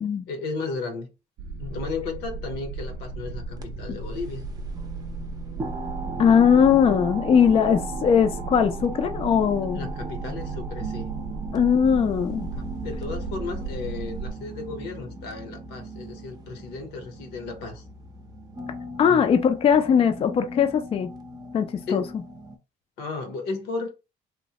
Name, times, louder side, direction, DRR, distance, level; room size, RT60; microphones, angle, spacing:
voice 1, 0.3-1.1 1.6-4.5 9.7-11.1 12.5-17.8 19.0-19.2 21.9-22.1 23.0-24.0, left 4 dB, 90° left, 0.9 m, -34 dB
sound 1, 1.4-14.3, right 3 dB, 80° right, 0.5 m, -35 dB
sound 2, 3.5-22.6, right 2 dB, 25° right, 0.6 m, -37 dB
voice 2, 6.2-9.9 11.5-12.5 19.0-21.1 21.5-22.0, left 7 dB, 35° left, 0.4 m, -20 dB
3.0 x 2.1 x 2.8 m
cardioid pair, 110°, 17 cm